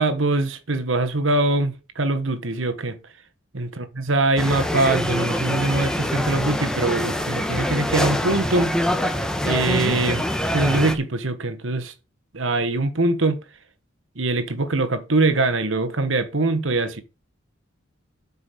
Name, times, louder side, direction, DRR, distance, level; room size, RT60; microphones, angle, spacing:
voice 1, 0.0-3.0 3.5-9.0 9.4-10.2 10.5-11.9 12.3-13.4 14.1-17.0, right 2 dB, 75° right, 1.5 m, -23 dB
sound 1, 4.4-10.9, equal, 5° left, 1.2 m, -24 dB
8.6 x 5.6 x 6.9 m
head